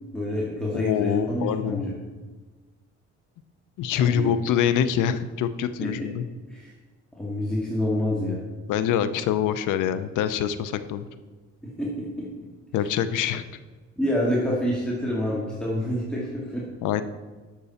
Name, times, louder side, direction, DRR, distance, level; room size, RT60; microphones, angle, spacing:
voice 1, 0.1-1.9 4.0-4.3 5.8-6.2 6.5-6.7 7.1-8.4 11.6-12.3 14.0-16.7, left 1 dB, 5° left, -6 dB, 2.3 m, -27 dB
voice 2, 0.7-1.8 3.8-6.2 8.7-11.1 12.7-13.4 16.8-17.0, left 9 dB, 85° left, 12 dB, 0.7 m, -25 dB
12.0 x 6.8 x 4.3 m, 1.3 s
cardioid pair, 90°, 30 cm